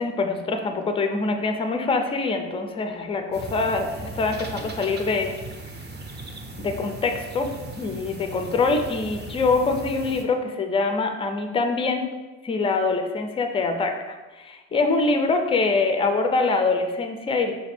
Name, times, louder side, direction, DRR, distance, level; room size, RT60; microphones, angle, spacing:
voice 1, 0.0-5.3 6.6-12.1 12.4-17.5, left 3 dB, 15° left, 5 dB, 0.3 m, -24 dB
sound 1, 3.3-10.2, right 2 dB, 30° right, 0.6 m, -38 dB
4.7 x 2.5 x 3.2 m, 1.2 s
supercardioid pair, 105°, 34 cm